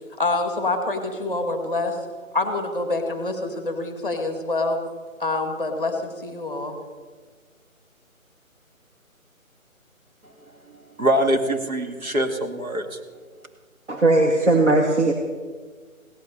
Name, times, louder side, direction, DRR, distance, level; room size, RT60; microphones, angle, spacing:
voice 1, 0.2-2.0 2.3-4.8 5.2-6.7, left 2 dB, 10° right, 6 dB, 1.6 m, -26 dB
voice 2, 11.0-13.0, right 1 dB, 80° right, 4 dB, 2.5 m, -23 dB
voice 3, 13.9-15.1, right 2 dB, 55° right, 1 dB, 2.0 m, -18 dB
17.0 x 12.5 x 6.8 m, 1.5 s
figure-of-eight pair, 155°, 42 cm